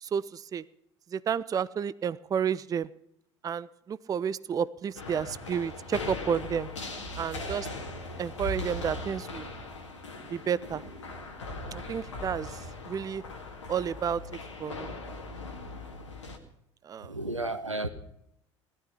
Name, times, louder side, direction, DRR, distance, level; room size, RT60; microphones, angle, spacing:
voice 1, 0.0-0.6 1.1-2.9 3.4-6.7 7.2-7.7 8.2-9.5 10.3-10.8 11.7-12.6 12.9-13.2 13.7-14.2 14.6-15.0 16.8-17.1, right 7 dB, 25° right, 19 dB, 0.5 m, -31 dB
sound 1, 5.0-16.4, left 2 dB, 75° left, 1.9 m, -39 dB
voice 2, 17.0-17.9, right 2 dB, 90° right, 10 dB, 1.0 m, -32 dB
17.5 x 13.0 x 5.7 m, 0.75 s
figure-of-eight pair, 65°, 15 cm